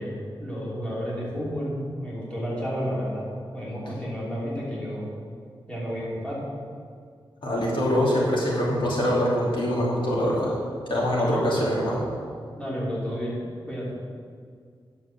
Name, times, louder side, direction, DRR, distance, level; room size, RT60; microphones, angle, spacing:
voice 1, 0.0-3.3 3.5-5.1 5.7-6.4 11.1-11.5 12.6-13.9, equal, 10° left, -7 dB, 2.8 m, -31 dB
voice 2, 7.4-10.5 10.9-12.0, equal, 65° left, -5 dB, 2.9 m, -24 dB
10.0 x 6.1 x 7.3 m, 2.1 s
wide cardioid pair, 140°, 9 cm